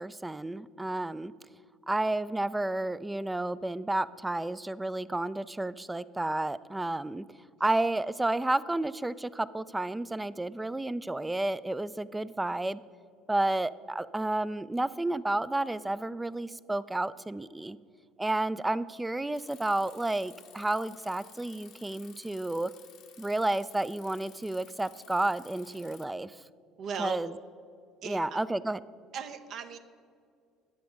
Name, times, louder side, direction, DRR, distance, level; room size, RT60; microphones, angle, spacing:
voice 1, 0.0-1.3 1.9-7.2 7.6-12.8 13.3-17.8 18.2-22.7 23.2-26.3 27.0-27.3 28.0-28.8, right 2 dB, 10° right, 16 dB, 0.3 m, -31 dB
Bicycle, 19.3-26.0, left 9 dB, 60° left, 0.8 m, -55 dB
voice 2, 26.8-27.2 28.0-28.2 29.1-29.8, right 7 dB, 60° right, 8 dB, 0.7 m, -36 dB
10.5 x 6.8 x 5.2 m, 2.3 s
hypercardioid pair, 65°, 0 cm